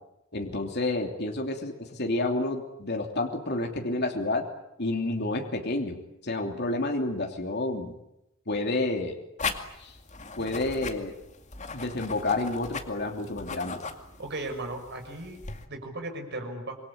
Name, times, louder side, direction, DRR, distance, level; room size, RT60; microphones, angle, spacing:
voice 1, 0.3-4.5 4.8-8.0 8.5-9.2 9.8-9.9 10.4-11.1 11.7-13.8, left 2 dB, 55° left, 3 dB, 3.0 m, -30 dB
sound 1, 9.4-15.7, left 4 dB, 35° left, 2.3 m, -38 dB
voice 2, 14.2-15.4 15.7-16.8, right 2 dB, 55° right, 4 dB, 6.3 m, -36 dB
26.5 x 23.0 x 8.8 m, 0.86 s
head